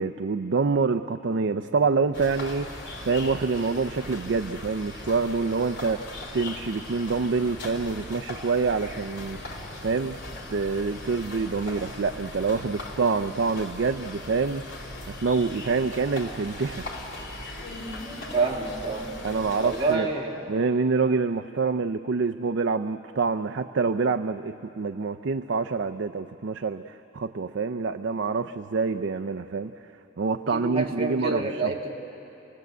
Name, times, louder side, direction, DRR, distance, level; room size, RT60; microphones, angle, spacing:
voice 1, 0.0-6.1 6.3-10.2 10.5-14.7 15.2-16.9 19.2-20.1 20.5-29.7 30.2-31.4, right 4 dB, 60° right, 7 dB, 0.5 m, -26 dB
Organ, 1.3-11.6, right 1 dB, 5° left, 4.0 m, -55 dB
sound 1, 2.1-20.0, left 1 dB, 55° left, 3.3 m, -39 dB
voice 2, 18.3-19.1 19.6-20.5 30.5-32.0, right 3 dB, 30° right, -1 dB, 2.0 m, -27 dB
27.5 x 18.5 x 8.1 m, 3.0 s
head